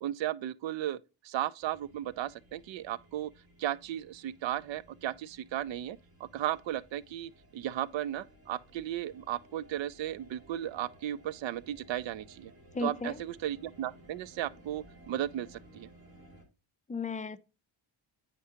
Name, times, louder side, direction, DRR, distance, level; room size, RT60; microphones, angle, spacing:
voice 1, 0.0-1.0 1.2-3.3 3.6-12.5 12.8-15.9, right 12 dB, 65° right, 0.5 m, -35 dB
sound 1, 1.6-16.4, right 1 dB, 45° right, 2.5 m, -58 dB
voice 2, 12.7-13.2 16.9-17.4, left 4 dB, 15° left, 0.5 m, -34 dB
8.6 x 4.6 x 2.8 m
cardioid pair, 70°, 49 cm